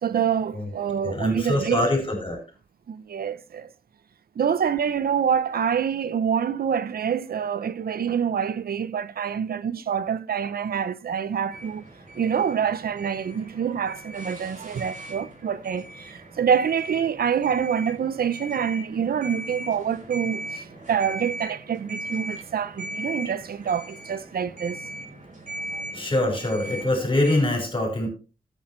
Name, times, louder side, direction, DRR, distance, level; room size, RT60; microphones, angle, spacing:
voice 1, 0.0-1.8 2.9-3.7 4.4-11.8 12.2-24.8, right 7 dB, 85° right, 0.6 m, -26 dB
voice 2, 1.0-2.4 25.9-28.1, left 1 dB, 35° left, 5.5 m, -24 dB
sound 1, 11.5-27.4, right 1 dB, 55° right, 4.2 m, -39 dB
13.5 x 9.0 x 3.2 m
wide cardioid pair, 90°, 15 cm